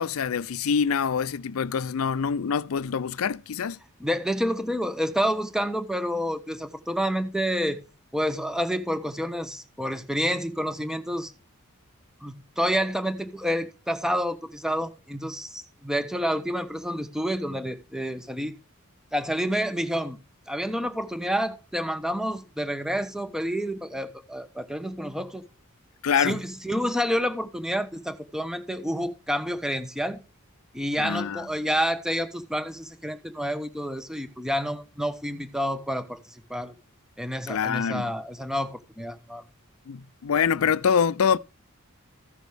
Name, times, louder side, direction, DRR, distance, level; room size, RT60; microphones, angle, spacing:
voice 1, 0.0-3.8 26.0-26.4 31.0-31.5 37.5-38.1 39.9-41.4, left 6 dB, 80° left, 0.5 m, -25 dB
voice 2, 4.0-7.8 8.1-11.3 12.2-18.5 19.1-20.2 20.5-25.4 26.2-30.2 30.7-36.2 36.5-36.7 37.2-39.4, equal, 5° right, 0.9 m, -29 dB
15.0 x 6.1 x 3.4 m
head